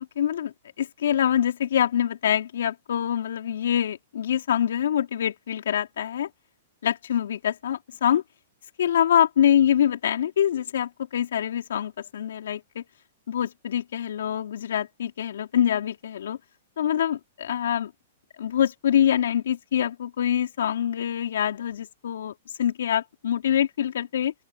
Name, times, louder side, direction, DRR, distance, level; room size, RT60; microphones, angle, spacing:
voice 1, 0.2-6.3 6.8-8.2 8.8-12.8 13.3-16.4 16.8-17.9 18.4-24.3, left 10 dB, 80° left, 3.8 m, -25 dB
open air
hypercardioid pair, 130°, 0 cm